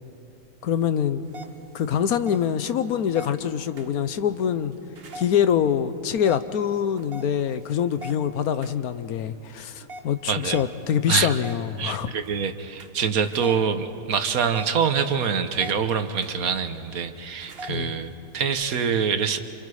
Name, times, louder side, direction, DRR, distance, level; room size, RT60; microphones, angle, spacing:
voice 1, 0.6-1.2 1.7-4.7 5.1-12.1 17.7-17.9, left 8 dB, 85° left, 12 dB, 1.3 m, -24 dB
sound 1, 1.2-18.7, right 1 dB, 45° right, 1.2 m, -45 dB
voice 2, 10.3-10.6 11.1-11.4 11.8-19.4, right 6 dB, 75° right, 8 dB, 1.5 m, -25 dB
28.5 x 27.0 x 4.9 m, 2.5 s
omnidirectional pair, 1.5 m